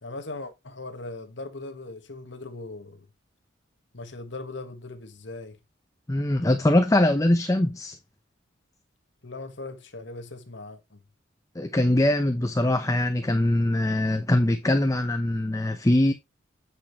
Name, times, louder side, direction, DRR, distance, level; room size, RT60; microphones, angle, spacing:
voice 1, 0.0-3.1 3.9-5.6 9.2-11.0, left 2 dB, 65° left, 1.5 m, -39 dB
voice 2, 6.1-8.0 11.6-16.1, left 1 dB, 15° left, 0.7 m, -22 dB
8.6 x 6.2 x 3.1 m
head